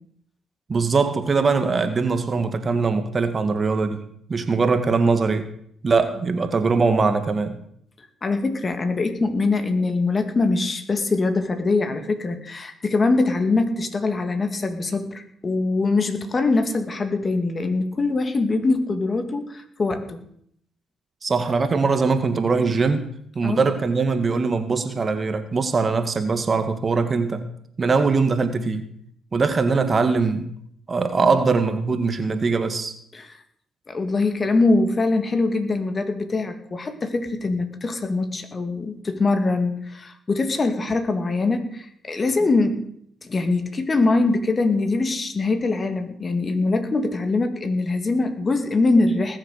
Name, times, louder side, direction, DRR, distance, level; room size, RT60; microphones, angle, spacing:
voice 1, 0.7-4.0 4.3-5.5 5.8-7.6 21.2-23.1 23.4-27.4 27.8-28.9 29.3-30.5 30.9-32.9, right 4 dB, 40° right, 8 dB, 1.8 m, -21 dB
voice 2, 8.2-20.2 23.4-23.6 31.2-31.3 33.1-33.3 33.9-42.8 43.2-49.4, left 3 dB, 40° left, 7 dB, 2.5 m, -23 dB
19.5 x 7.3 x 6.7 m, 0.68 s
hypercardioid pair, 50°, 0 cm